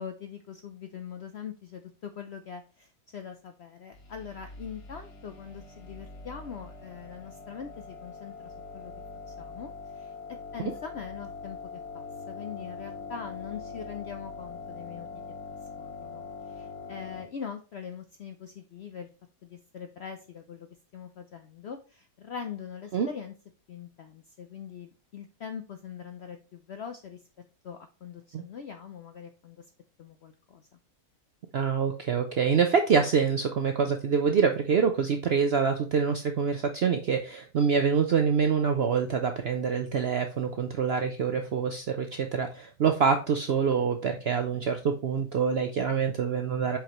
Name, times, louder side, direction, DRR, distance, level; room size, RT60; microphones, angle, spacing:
voice 1, 0.0-8.9 9.3-10.1 10.5-15.1 15.8-19.1 19.4-20.7 20.9-23.3 23.7-27.2 27.6-29.7 30.0-30.7, left 7 dB, 70° left, 7 dB, 0.6 m, -42 dB
sound 1, 3.9-17.2, left 4 dB, 90° left, 1.9 m, -43 dB
voice 2, 31.5-46.8, right 6 dB, 65° right, 6 dB, 0.6 m, -26 dB
7.7 x 5.0 x 3.0 m, 0.35 s
omnidirectional pair, 1.7 m